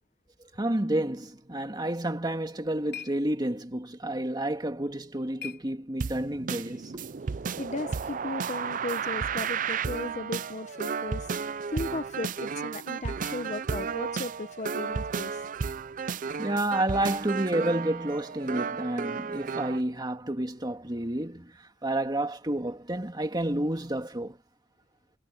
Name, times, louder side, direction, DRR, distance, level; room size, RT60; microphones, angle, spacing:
voice 1, 0.6-7.1 16.4-24.4, right 1 dB, 25° right, 2.1 m, -30 dB
sound 1, 2.2-6.4, left 9 dB, 70° left, 4.7 m, -48 dB
sound 2, 6.0-19.8, right 6 dB, 50° right, 0.5 m, -33 dB
voice 2, 7.6-11.3 11.7-15.4, left 2 dB, 40° left, 1.0 m, -36 dB
head